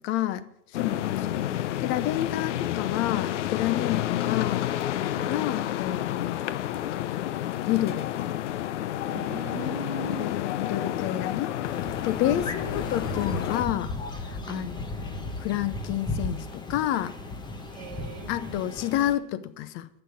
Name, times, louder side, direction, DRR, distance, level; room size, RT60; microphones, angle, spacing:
voice 1, 0.0-4.7 5.0-6.5 7.6-8.3 10.0-11.6 11.9-13.9 14.2-17.2 18.3-19.9, left 13 dB, 35° left, 0.7 m, -30 dB
sound 1, 0.7-13.6, left 12 dB, 70° left, 0.7 m, -30 dB
voice 2, 5.2-5.5 9.1-10.4 12.2-12.5 14.4-14.7 17.7-18.6, right 3 dB, 35° right, 2.3 m, -39 dB
sound 2, 11.6-19.1, left 2 dB, 10° left, 1.1 m, -35 dB
10.0 x 6.9 x 8.3 m
hypercardioid pair, 130°, 37 cm